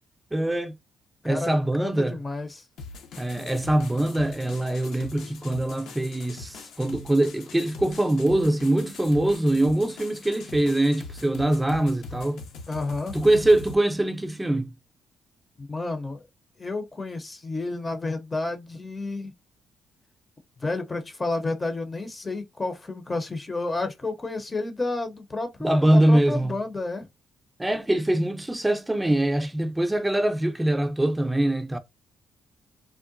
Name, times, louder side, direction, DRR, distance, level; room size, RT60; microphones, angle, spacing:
voice 1, 0.3-0.8 1.2-2.2 3.2-12.4 13.1-14.7 25.6-26.6 27.6-31.8, right 1 dB, 10° right, 0.6 m, -23 dB
voice 2, 1.8-2.6 12.7-13.2 15.6-16.2 16.6-19.3 20.6-27.1, left 2 dB, 25° left, 0.7 m, -31 dB
sound 1, 2.8-13.7, left 3 dB, 80° left, 0.8 m, -42 dB
3.6 x 2.1 x 2.5 m
cardioid pair, 90°, 0 cm